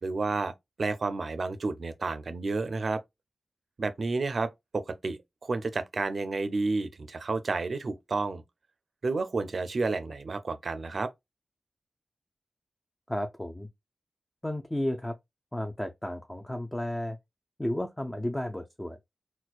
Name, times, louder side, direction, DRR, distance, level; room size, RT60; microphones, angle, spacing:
voice 1, 0.0-0.5 0.8-3.0 3.8-8.4 9.0-11.1, right 3 dB, 55° right, 0.4 m, -31 dB
voice 2, 13.1-13.7 14.4-15.1 15.5-17.2 17.6-19.0, left 1 dB, 10° left, 0.3 m, -33 dB
4.2 x 2.1 x 2.3 m
wide cardioid pair, 120°, 0 cm